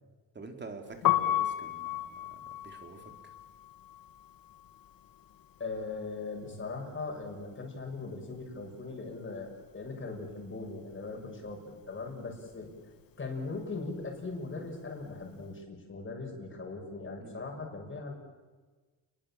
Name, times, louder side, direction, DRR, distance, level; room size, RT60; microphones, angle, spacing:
voice 1, 0.3-3.3 11.2-11.5 17.2-17.5, right 3 dB, 25° right, 4 dB, 3.7 m, -48 dB
Piano, 0.9-6.9 7.1-8.7 9.0-15.4, left 12 dB, 55° left, 2.3 m, -35 dB
voice 2, 5.6-9.5 9.7-12.7 13.2-18.1, left 3 dB, 30° left, 2 dB, 6.6 m, -39 dB
30.0 x 21.5 x 7.5 m, 1.3 s
cardioid pair, 125°, 41 cm